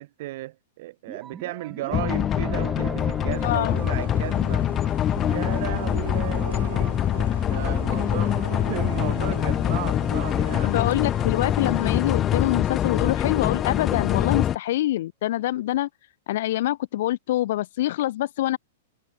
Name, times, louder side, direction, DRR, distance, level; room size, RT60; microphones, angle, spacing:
voice 1, 0.0-4.7 5.3-7.0 7.5-10.7, right 17 dB, 55° right, 1.4 m, -35 dB
sound 1, 1.1-12.8, right 7 dB, 20° right, 1.6 m, -43 dB
sound 2, 1.9-14.6, left 10 dB, 25° left, 0.4 m, -24 dB
voice 2, 3.4-3.8 10.5-15.9 16.3-18.6, left 14 dB, 55° left, 0.8 m, -25 dB
sound 3, 3.4-12.1, right 7 dB, 75° right, 1.6 m, -40 dB
figure-of-eight pair, 105°, 0 cm